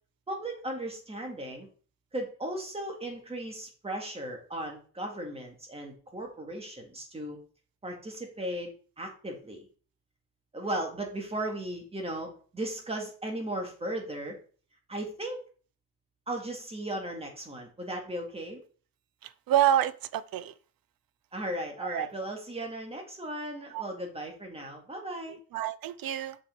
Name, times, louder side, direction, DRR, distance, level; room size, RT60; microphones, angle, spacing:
voice 1, 0.3-1.7 2.1-7.4 7.8-9.7 10.5-14.4 14.9-15.4 16.3-18.6 21.3-25.4, right 1 dB, 15° right, 1 dB, 2.2 m, -36 dB
voice 2, 19.5-20.5 21.9-22.1 23.7-23.8 25.5-26.4, right 11 dB, 70° right, 16 dB, 0.7 m, -27 dB
6.9 x 6.0 x 4.5 m, 0.41 s
wide cardioid pair, 160°, 36 cm